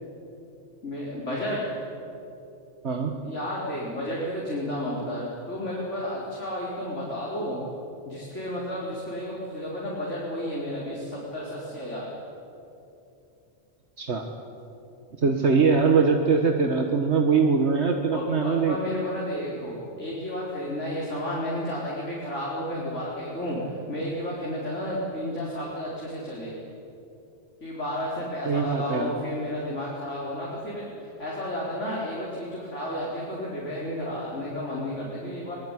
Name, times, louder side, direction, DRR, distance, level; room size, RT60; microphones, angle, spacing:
voice 1, 0.8-1.6 2.9-3.0 3.2-7.6 8.1-12.1 18.1-23.6 23.9-26.5 27.6-30.9 31.2-35.5, left 1 dB, 90° left, -5 dB, 4.7 m, -32 dB
voice 2, 2.8-3.1 14.0-14.2 15.2-18.8 28.5-29.1, right 5 dB, 70° right, 4 dB, 1.8 m, -22 dB
24.5 x 20.0 x 9.9 m, 2.8 s
omnidirectional pair, 1.2 m